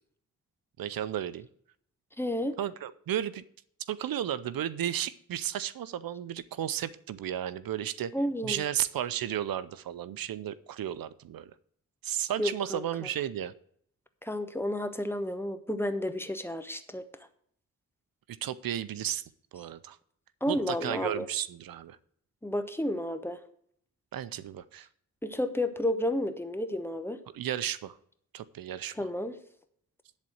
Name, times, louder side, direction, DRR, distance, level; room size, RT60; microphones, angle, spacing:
voice 1, 0.8-1.5 2.6-3.4 3.9-8.1 8.4-11.5 12.0-13.5 18.4-19.2 19.5-20.0 20.5-22.0 24.1-24.9 27.3-28.0 28.3-29.0, right 10 dB, 90° right, 15 dB, 0.6 m, -33 dB
voice 2, 2.2-2.6 8.1-8.7 12.4-13.1 14.2-17.0 20.4-21.3 22.4-23.4 25.2-27.2 28.9-29.4, left 1 dB, 5° left, 9 dB, 1.1 m, -31 dB
10.5 x 4.2 x 7.8 m, 0.65 s
cardioid pair, 70°, 34 cm